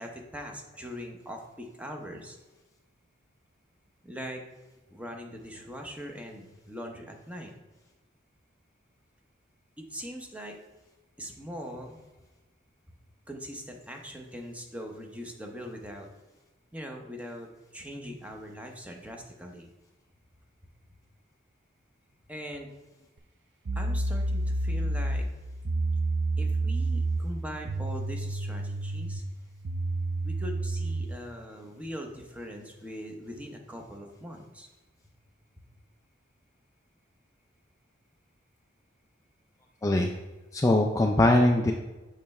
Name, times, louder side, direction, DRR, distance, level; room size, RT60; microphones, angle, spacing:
voice 1, 0.0-2.4 4.0-4.4 4.9-7.5 9.9-10.6 11.2-12.0 13.3-16.1 16.7-17.5 17.7-19.7 22.3-22.7 23.8-25.3 26.4-29.2 30.2-34.7, equal, 5° right, 2 dB, 0.7 m, -41 dB
sound 1, 23.2-23.3 23.7-31.2, right 2 dB, 65° right, 0.5 m, -30 dB
voice 2, 39.8-40.1 40.5-41.7, left 1 dB, 15° left, 2 dB, 0.3 m, -22 dB
6.7 x 3.2 x 5.3 m, 1.1 s
head